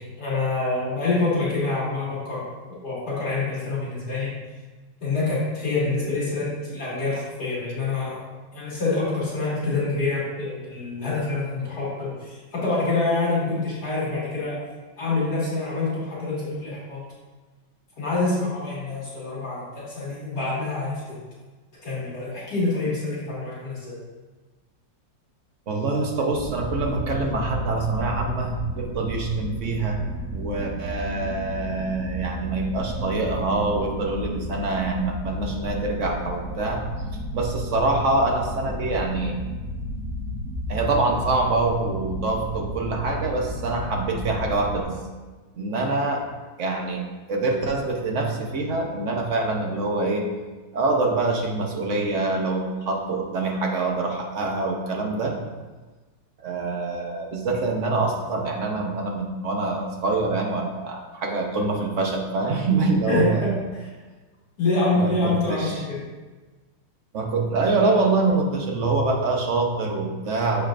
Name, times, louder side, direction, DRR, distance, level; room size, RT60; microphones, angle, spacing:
voice 1, 0.0-2.4 2.8-4.3 5.0-8.3 8.5-14.6 15.0-17.0 18.0-21.2 21.8-24.0 63.1-63.8 64.6-66.0, left 3 dB, 55° left, -8 dB, 2.6 m, -26 dB
voice 2, 25.7-30.0 30.3-36.8 37.3-39.4 40.7-44.9 45.6-46.2 46.6-47.0 47.3-50.3 50.7-55.3 56.4-63.6 64.9-65.8 67.1-70.6, right 3 dB, 50° right, 1 dB, 1.0 m, -25 dB
sound 1, 26.3-44.8, equal, 80° right, 2.4 m, -33 dB
7.3 x 7.0 x 2.5 m, 1.3 s
omnidirectional pair, 2.1 m